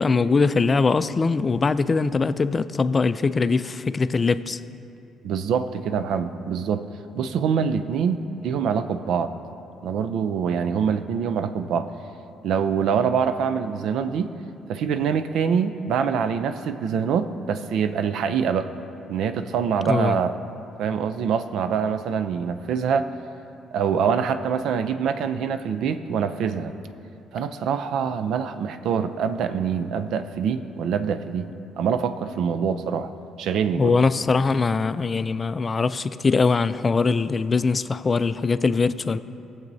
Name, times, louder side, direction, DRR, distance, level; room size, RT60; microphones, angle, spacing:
voice 1, 0.0-4.6 19.9-20.2 33.8-39.2, left 4 dB, 30° left, 13 dB, 0.3 m, -22 dB
voice 2, 5.2-6.8 7.1-9.3 9.8-11.9 12.4-14.3 14.7-18.7 19.1-20.4 20.8-23.1 23.7-26.8 27.3-31.5 31.8-33.1 33.4-33.9, right 7 dB, 75° right, 9 dB, 0.4 m, -25 dB
18.5 x 7.3 x 2.7 m, 2.7 s
cardioid pair, 115°, 0 cm